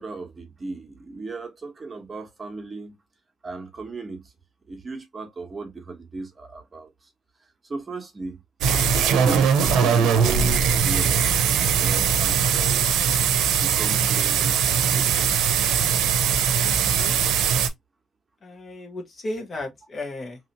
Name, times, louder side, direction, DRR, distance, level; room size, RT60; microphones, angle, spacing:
voice 1, 0.0-3.0 3.4-4.3 4.7-7.1 7.6-8.4 9.2-11.2 11.8-13.0 13.6-15.7, right 3 dB, 30° right, 1.0 m, -36 dB
sound 1, 8.6-17.7, right 7 dB, 85° right, 0.6 m, -21 dB
voice 2, 16.6-17.1 18.4-20.4, left 2 dB, 40° left, 1.2 m, -35 dB
3.0 x 2.7 x 2.9 m
cardioid pair, 90°, 0 cm